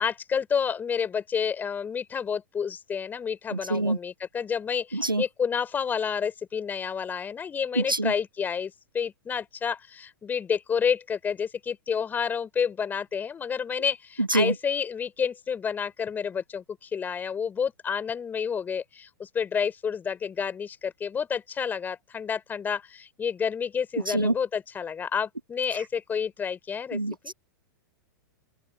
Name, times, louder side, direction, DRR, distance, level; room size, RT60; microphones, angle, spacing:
voice 1, 0.0-27.3, left 7 dB, 15° left, 3.6 m, -30 dB
voice 2, 3.5-4.0 4.9-5.2 7.8-8.1 14.2-14.5 24.1-24.3 26.9-27.3, right 2 dB, 90° right, 1.3 m, -25 dB
open air
figure-of-eight pair, 100°, 11 cm